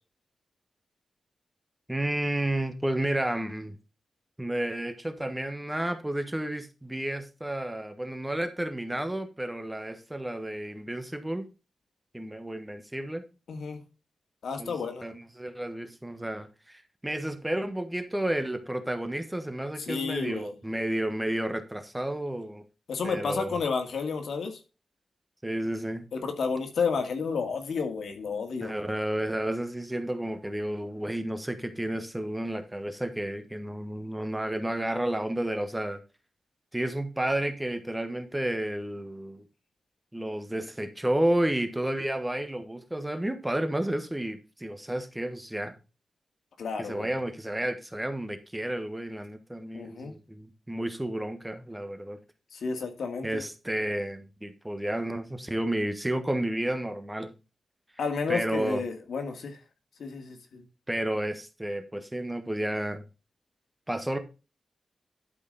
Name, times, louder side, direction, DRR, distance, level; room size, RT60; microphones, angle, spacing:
voice 1, 1.9-3.7 4.4-11.5 12.1-13.2 14.6-22.6 23.0-23.6 25.4-26.1 28.6-36.0 36.7-39.4 40.1-45.7 46.8-52.2 53.2-57.3 58.3-58.8 60.9-63.0 63.9-64.2, right 1 dB, 10° right, 1.3 m, -31 dB
voice 2, 13.5-13.8 14.4-15.1 19.8-20.5 22.9-24.6 26.1-28.7 46.6-47.1 49.7-50.1 52.5-53.5 58.0-59.6 60.0-60.6, left 5 dB, 85° left, 2.1 m, -31 dB
12.0 x 5.0 x 4.0 m
wide cardioid pair, 130°, 0 cm